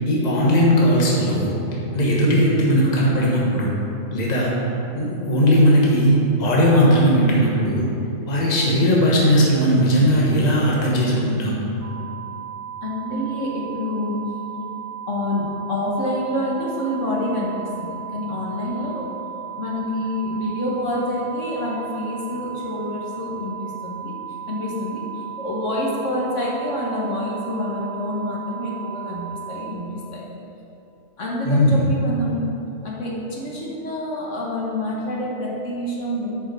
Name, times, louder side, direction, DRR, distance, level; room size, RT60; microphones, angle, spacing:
voice 1, 0.1-1.5 1.9-3.7 4.1-4.5 4.9-7.8 8.3-11.6 31.4-31.9, equal, 30° left, -4 dB, 1.3 m, -18 dB
sound 1, 11.8-29.7, right 8 dB, 75° right, 1.2 m, -35 dB
voice 2, 12.8-14.1 15.1-19.1 19.6-24.1 24.5-30.2 31.2-32.4 32.8-36.3, left 1 dB, 65° left, -4 dB, 1.6 m, -27 dB
8.3 x 5.2 x 5.5 m, 2.8 s
omnidirectional pair, 1.4 m